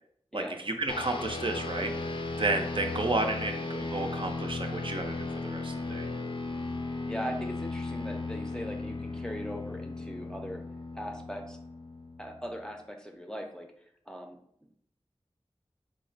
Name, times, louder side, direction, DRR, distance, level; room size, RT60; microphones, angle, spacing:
voice 1, 0.3-1.9 2.4-6.1, right 2 dB, 55° right, 4 dB, 0.5 m, -32 dB
sound 1, 0.9-12.6, left 3 dB, 55° left, 0.5 m, -36 dB
voice 2, 7.1-10.6 10.9-11.6 12.2-13.7 14.1-14.7, equal, 5° left, 3 dB, 0.5 m, -40 dB
3.6 x 2.1 x 3.9 m, 0.67 s
wide cardioid pair, 40°, 11 cm